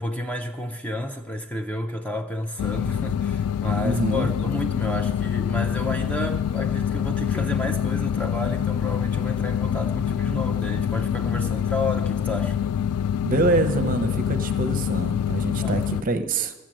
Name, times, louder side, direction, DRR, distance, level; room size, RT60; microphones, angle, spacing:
voice 1, 0.0-12.6 15.6-16.1, left 1 dB, 5° left, 5 dB, 0.4 m, -31 dB
sound 1, 2.6-16.0, left 8 dB, 85° left, 0.3 m, -25 dB
voice 2, 3.8-4.3 13.2-16.5, right 2 dB, 40° right, 8 dB, 0.7 m, -25 dB
14.0 x 6.7 x 7.5 m, 1.1 s
head